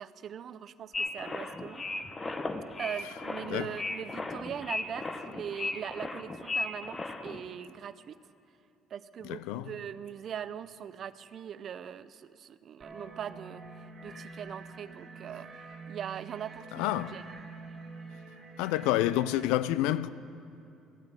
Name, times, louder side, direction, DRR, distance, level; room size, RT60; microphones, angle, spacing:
voice 1, 0.0-1.8 2.8-8.2 8.9-13.6 14.0-17.2, right 8 dB, 55° right, 0.5 m, -41 dB
sound 1, 0.9-7.4, left 3 dB, 25° left, 0.9 m, -36 dB
voice 2, 3.4-3.8 9.2-9.8 14.1-14.2 16.7-17.2 18.6-20.1, left 14 dB, 80° left, 0.3 m, -29 dB
sound 2, 12.8-19.5, right 4 dB, 35° right, 3.0 m, -47 dB
15.0 x 8.8 x 7.3 m
supercardioid pair, 75°, 0 cm